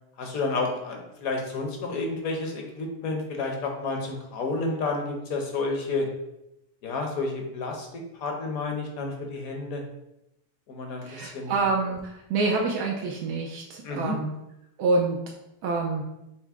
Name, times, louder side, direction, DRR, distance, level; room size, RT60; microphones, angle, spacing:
voice 1, 0.2-6.1 6.8-7.9 8.1-9.8 10.7-11.5 13.8-14.1, left 3 dB, 65° left, 2 dB, 1.2 m, -30 dB
voice 2, 11.0-14.3 14.8-15.2 15.6-16.0, right 3 dB, 80° right, -1 dB, 1.1 m, -27 dB
5.7 x 2.1 x 3.5 m, 0.86 s
omnidirectional pair, 1.7 m